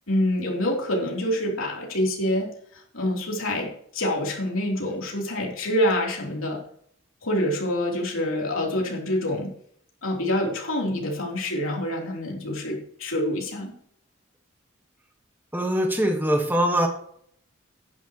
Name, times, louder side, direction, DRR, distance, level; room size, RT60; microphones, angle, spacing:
voice 1, 0.1-6.6 7.2-9.5 10.0-13.7, left 1 dB, 85° left, -1 dB, 3.2 m, -26 dB
voice 2, 15.5-16.9, equal, 10° right, 3 dB, 1.4 m, -22 dB
11.5 x 10.5 x 3.0 m, 0.64 s
head